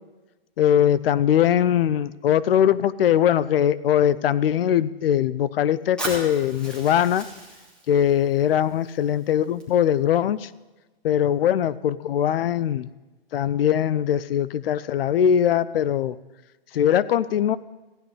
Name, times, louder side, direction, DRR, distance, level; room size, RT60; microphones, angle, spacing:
voice 1, 0.6-7.3 7.9-10.5 11.0-12.9 13.3-16.2 16.7-17.6, left 10 dB, 70° left, 18 dB, 0.5 m, -21 dB
Fire, 6.0-10.0, right 2 dB, 5° left, 2.4 m, -38 dB
15.5 x 10.0 x 3.3 m, 1.2 s
hypercardioid pair, 140°, 30 cm